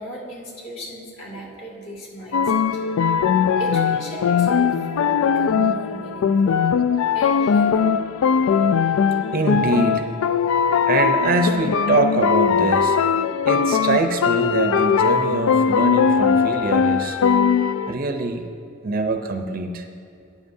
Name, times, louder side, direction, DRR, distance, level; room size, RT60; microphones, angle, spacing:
voice 1, 0.0-2.8 3.6-6.6 7.1-7.9, equal, 60° left, -4 dB, 2.0 m, -36 dB
sound 1, 2.3-17.9, left 6 dB, 80° left, 0.3 m, -20 dB
voice 2, 9.3-10.1 10.9-13.0 13.5-17.2 17.9-18.5 18.8-19.9, right 3 dB, 45° right, 6 dB, 0.6 m, -23 dB
13.0 x 9.9 x 2.7 m, 2.5 s
head